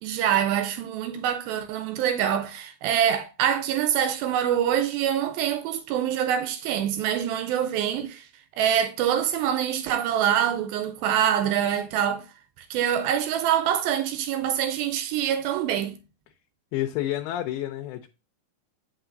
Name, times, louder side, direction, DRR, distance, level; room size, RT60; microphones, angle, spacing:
voice 1, 0.0-8.3 8.6-12.3 12.7-16.0, right 9 dB, 85° right, 2.4 m, -25 dB
voice 2, 16.7-18.1, left 13 dB, 85° left, 2.5 m, -29 dB
8.3 x 5.8 x 2.6 m
omnidirectional pair, 4.3 m